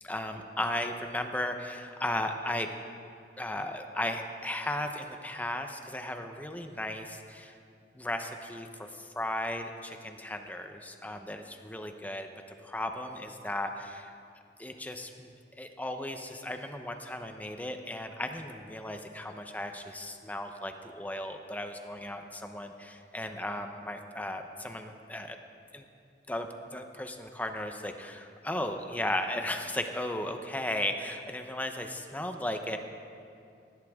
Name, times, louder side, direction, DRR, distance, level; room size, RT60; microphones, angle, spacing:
voice 1, 0.0-2.7 3.4-7.6 7.9-12.3 12.6-14.1 14.6-25.4 25.7-25.9 26.3-32.8, left 1 dB, 10° left, 5 dB, 0.8 m, -36 dB
19.5 x 16.5 x 3.6 m, 2.5 s
head